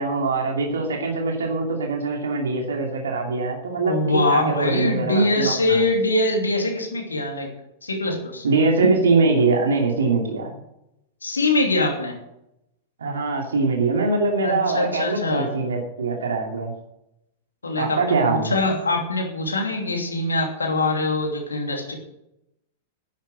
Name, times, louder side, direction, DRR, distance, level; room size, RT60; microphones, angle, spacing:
voice 1, 0.0-5.9 8.4-10.5 13.0-16.7 17.8-18.5, right 3 dB, 70° right, 1 dB, 2.7 m, -23 dB
voice 2, 3.7-7.5 7.8-8.5 11.2-12.2 14.4-15.5 17.6-21.9, left 2 dB, 80° left, 2 dB, 2.9 m, -23 dB
10.5 x 10.5 x 7.8 m, 0.86 s
figure-of-eight pair, 95°, 0 cm